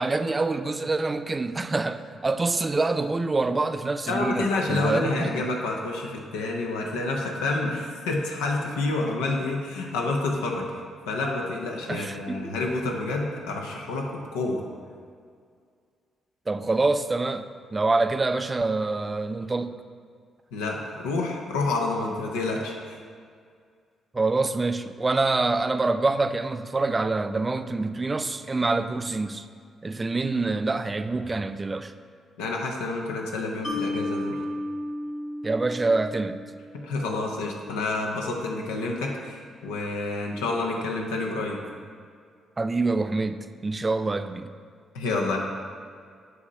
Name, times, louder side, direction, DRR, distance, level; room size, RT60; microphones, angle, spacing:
voice 1, 0.0-5.5 11.9-12.6 16.5-19.8 24.1-29.5 29.8-31.9 35.4-36.4 42.6-44.5, right 3 dB, 30° right, 10 dB, 0.4 m, -26 dB
voice 2, 4.1-10.7 11.1-14.6 20.5-23.0 32.4-34.4 36.7-41.6 44.9-45.4, left 2 dB, 90° left, 0 dB, 0.6 m, -28 dB
Mallet percussion, 33.6-36.9, left 1 dB, 70° left, 1.2 m, -33 dB
8.1 x 2.8 x 5.4 m, 2.1 s
supercardioid pair, 55°, 0 cm